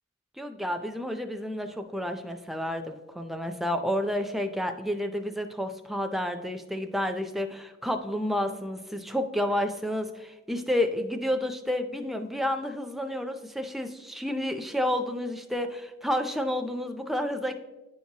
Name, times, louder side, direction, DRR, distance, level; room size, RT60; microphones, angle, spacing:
voice 1, 0.4-17.5, left 1 dB, ahead, 5 dB, 0.3 m, -30 dB
9.8 x 4.6 x 2.7 m, 1.1 s
head